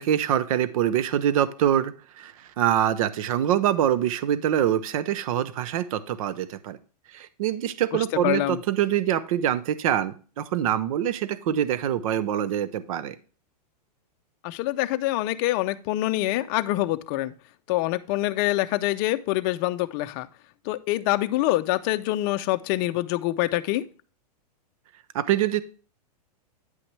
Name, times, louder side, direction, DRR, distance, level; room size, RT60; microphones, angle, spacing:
voice 1, 0.0-6.8 7.1-13.2 25.1-25.6, right 10 dB, 55° right, 15 dB, 0.7 m, -25 dB
voice 2, 8.2-8.6 14.4-17.3 17.7-20.3 20.7-23.9, left 16 dB, 35° left, 9 dB, 0.6 m, -25 dB
9.3 x 5.9 x 3.2 m, 0.38 s
supercardioid pair, 155°, 21 cm